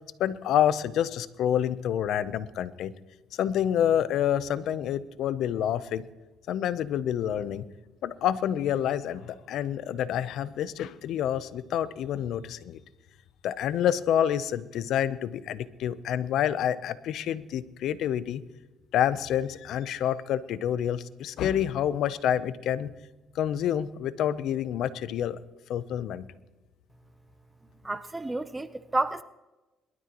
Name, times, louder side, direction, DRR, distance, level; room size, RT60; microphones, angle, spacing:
voice 1, 0.2-2.9 3.4-6.0 6.5-7.6 8.0-12.8 13.4-18.4 18.9-22.9 23.4-25.4 25.7-26.2, left 10 dB, 75° left, 0.7 m, -28 dB
voice 2, 27.8-29.2, right 2 dB, 15° right, 0.7 m, -30 dB
22.5 x 12.5 x 3.0 m
cardioid pair, 85°, 0 cm